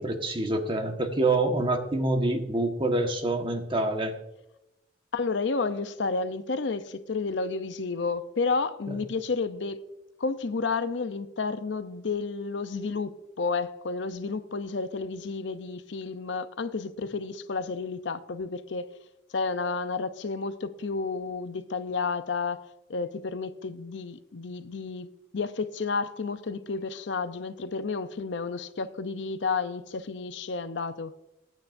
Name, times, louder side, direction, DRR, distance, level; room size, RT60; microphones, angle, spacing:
voice 1, 0.0-4.1, right 2 dB, 30° right, 1.3 m, -26 dB
voice 2, 5.1-9.8 10.2-18.9 19.3-31.1, left 4 dB, 65° left, 0.6 m, -31 dB
21.5 x 9.3 x 2.6 m
head